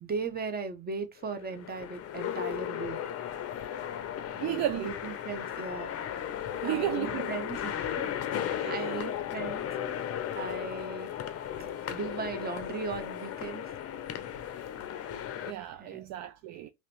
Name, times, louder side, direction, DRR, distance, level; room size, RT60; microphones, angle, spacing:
voice 1, 0.0-3.3 4.4-5.9 6.3-6.4 6.6-9.7 10.3-11.1 11.6-13.7 15.8-16.1, right 4 dB, 25° right, 0.8 m, -38 dB
sound 1, 1.2-15.5, left 10 dB, 40° left, 0.6 m, -36 dB
voice 2, 4.4-4.9 6.6-7.4 8.6-9.1 15.4-16.7, right 13 dB, 45° right, 0.4 m, -33 dB
3.0 x 2.8 x 3.0 m
hypercardioid pair, 85°, 40 cm